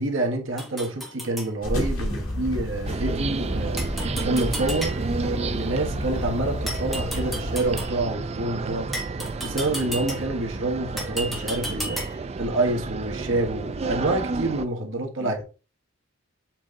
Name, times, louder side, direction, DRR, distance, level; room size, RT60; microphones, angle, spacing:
voice 1, 0.0-3.8 4.2-8.9 9.4-12.0 12.4-15.4, right 2 dB, 65° right, 1.5 m, -27 dB
sound 1, 0.6-1.5 3.8-5.3 6.7-8.0 8.9-10.5 11.0-12.3, right 1 dB, ahead, 1.6 m, -34 dB
sound 2, 1.6-7.9, left 1 dB, 70° left, 2.7 m, -31 dB
voice 2, 2.1-2.7 5.8-6.1 15.2-15.4, left 3 dB, 45° left, 2.0 m, -46 dB
sound 3, 2.9-14.7, right 3 dB, 30° right, 0.4 m, -31 dB
7.5 x 3.9 x 3.8 m
head